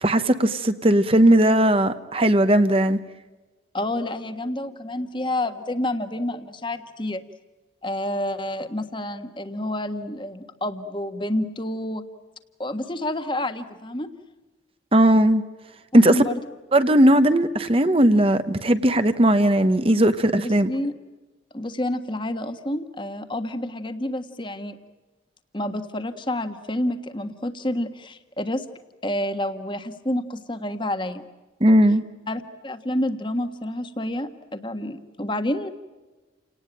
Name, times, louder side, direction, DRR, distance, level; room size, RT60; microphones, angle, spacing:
voice 1, 0.0-3.0 14.9-15.4 15.9-16.2 16.7-20.7 31.6-32.0, right 1 dB, 30° right, 10 dB, 1.0 m, -18 dB
voice 2, 3.7-7.2 7.8-12.0 12.6-14.1 16.1-16.4 20.4-20.9 21.5-24.8 25.5-28.6 29.0-31.3 32.3-35.7, left 1 dB, 25° left, 8 dB, 1.5 m, -29 dB
30.0 x 19.0 x 8.9 m, 1.2 s
head